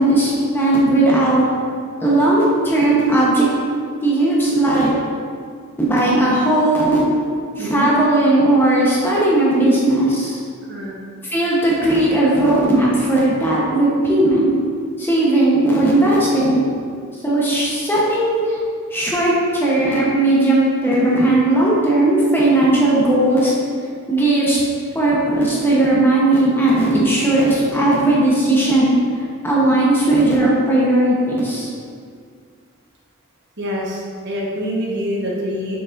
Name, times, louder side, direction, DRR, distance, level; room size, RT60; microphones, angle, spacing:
voice 1, 0.0-1.4 2.0-3.5 4.0-4.9 5.8-7.0 7.6-10.4 11.2-14.5 15.0-16.6 17.2-18.6 18.9-23.5 24.1-24.6 24.9-28.9 29.4-31.7, right 1 dB, 10° left, -6 dB, 1.0 m, -16 dB
voice 2, 7.6-7.9 10.7-10.9 33.6-35.8, equal, 50° right, -4 dB, 1.2 m, -25 dB
6.8 x 6.3 x 2.6 m, 2.2 s
head